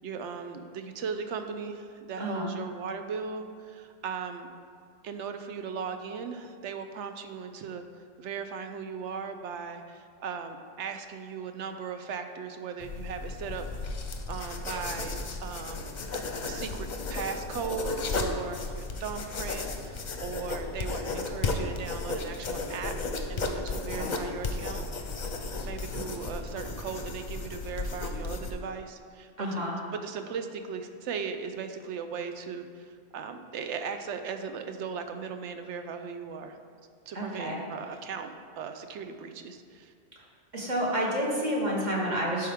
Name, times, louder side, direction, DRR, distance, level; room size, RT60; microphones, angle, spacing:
voice 1, 0.0-4.5 5.0-7.8 8.2-13.9 14.3-15.8 16.1-24.9 25.6-29.6 29.9-36.6 37.1-38.3 38.6-39.9, right 6 dB, 80° right, 7 dB, 0.9 m, -38 dB
voice 2, 2.2-2.5 23.9-24.1 29.4-29.8 37.1-37.6 40.5-42.5, equal, 40° right, -3 dB, 1.4 m, -29 dB
sound 1, 12.8-28.5, left 3 dB, 45° left, 0.7 m, -34 dB
11.5 x 4.6 x 3.5 m, 2.1 s
omnidirectional pair, 1.2 m